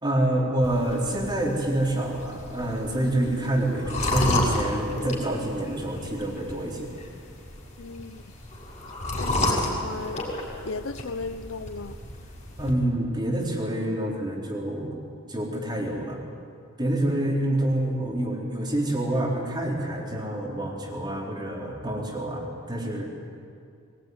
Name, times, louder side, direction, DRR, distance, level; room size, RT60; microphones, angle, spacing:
voice 1, 0.0-6.9 12.6-15.0 15.3-16.2 16.8-23.1, right 1 dB, 20° right, 4.3 m, -27 dB
sound 1, 0.6-12.7, left 1 dB, 30° left, 5.8 m, -31 dB
voice 2, 7.8-8.2 9.2-10.3 10.6-12.0, left 3 dB, 70° left, 0.7 m, -36 dB
23.0 x 20.0 x 9.7 m
head